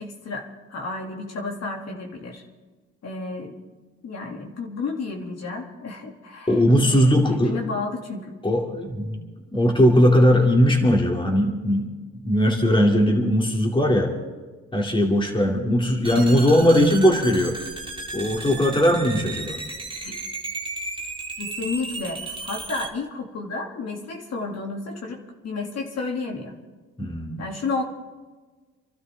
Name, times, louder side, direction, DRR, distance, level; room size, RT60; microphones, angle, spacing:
voice 1, 0.0-2.4 3.0-3.6 4.0-8.3 16.1-16.4 20.0-20.2 21.4-26.5 27.4-27.8, left 3 dB, 60° left, 1 dB, 2.6 m, -32 dB
voice 2, 6.5-7.6 8.4-9.2 9.5-14.1 14.7-17.6 18.1-19.6 27.0-27.4, equal, 15° left, 0 dB, 2.7 m, -19 dB
sound 1, 16.0-22.9, right 3 dB, 15° right, 1.9 m, -34 dB
27.5 x 12.5 x 3.6 m, 1.4 s
cardioid pair, 90°, 30 cm